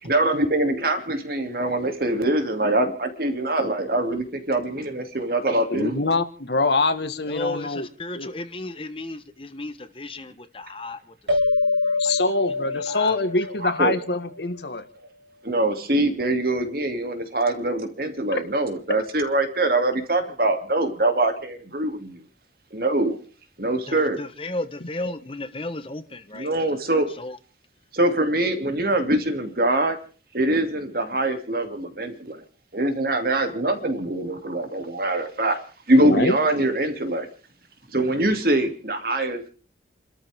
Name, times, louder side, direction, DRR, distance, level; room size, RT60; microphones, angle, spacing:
voice 1, 0.0-6.0 13.6-13.9 15.4-22.2 22.7-23.2 23.6-24.2 26.3-27.1 27.9-30.0 30.3-32.4 32.7-35.6 35.9-37.3 37.9-39.5, right 1 dB, 55° right, 2.7 m, -23 dB
voice 2, 5.7-7.9 8.1-8.3 12.0-14.8 18.3-18.4 24.8-25.1 36.0-36.4, left 3 dB, 65° left, 1.7 m, -24 dB
voice 3, 7.3-11.0 11.4-12.0 12.7-13.2 23.9-26.5 27.2-27.3, left 2 dB, 30° left, 1.2 m, -34 dB
sound 1, 11.3-14.3, left 3 dB, 90° right, 3.7 m, -25 dB
29.5 x 13.5 x 3.7 m
head